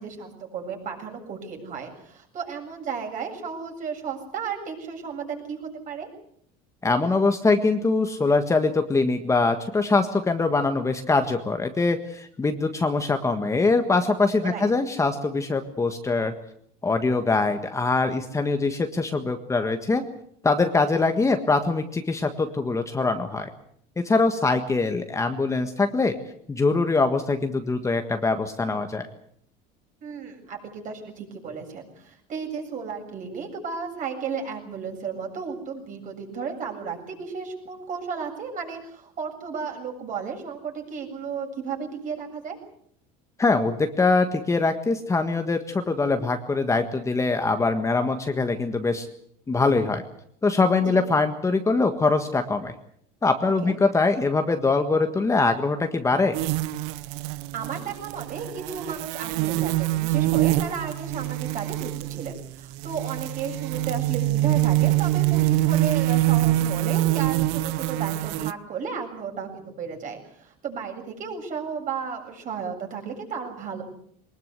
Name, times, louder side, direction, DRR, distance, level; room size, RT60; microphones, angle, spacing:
voice 1, 0.0-6.1 14.4-14.7 30.0-42.6 50.8-51.0 53.4-53.7 57.3-73.8, right 6 dB, 45° right, 2 dB, 7.4 m, -34 dB
voice 2, 6.8-16.3 16.8-20.0 20.4-23.5 24.0-26.1 26.5-29.1 43.4-49.1 49.5-50.0 50.4-52.7 53.2-56.3, left 3 dB, 15° left, 6 dB, 1.6 m, -23 dB
sound 1, 56.3-68.5, right 17 dB, 80° right, 0.9 m, -25 dB
22.5 x 20.5 x 8.1 m, 0.67 s
cardioid pair, 130°, 19 cm